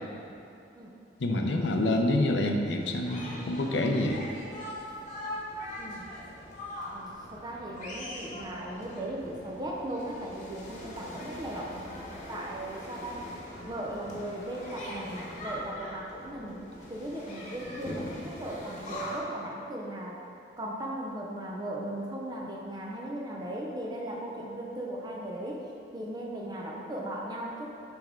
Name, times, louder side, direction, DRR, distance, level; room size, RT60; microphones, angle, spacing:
voice 1, 1.2-4.2, left 1 dB, 80° left, 3 dB, 0.6 m, -27 dB
sound 1, 2.8-19.2, left 1 dB, 40° left, 1.1 m, -42 dB
voice 2, 5.8-6.1 6.9-11.7 12.3-13.2 13.6-16.6 16.9-20.2 20.6-25.6 25.9-27.7, right 1 dB, 25° right, -2 dB, 0.5 m, -37 dB
8.7 x 3.4 x 3.6 m, 2.6 s
head